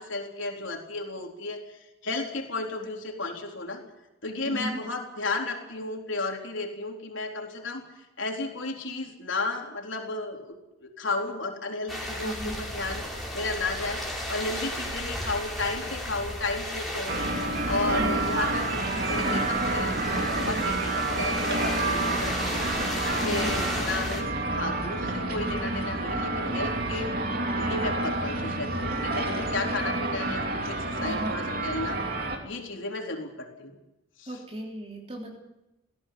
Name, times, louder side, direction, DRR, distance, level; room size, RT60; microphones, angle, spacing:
voice 1, 0.0-3.8 4.2-7.8 8.2-13.0 13.3-14.0 14.3-17.2 17.6-22.7 23.1-27.1 27.5-32.0 32.4-33.8 34.2-34.4, left 3 dB, 70° left, 2 dB, 3.9 m, -33 dB
voice 2, 4.5-4.8 12.2-12.6 17.9-18.2 23.2-23.6 31.0-31.4 34.3-35.3, right 1 dB, 30° right, 0 dB, 3.4 m, -35 dB
sound 1, 11.9-24.2, equal, ahead, 4.7 m, -34 dB
sound 2, 17.1-32.4, right 2 dB, 45° right, 3.1 m, -29 dB
20.0 x 16.0 x 9.4 m, 0.92 s
head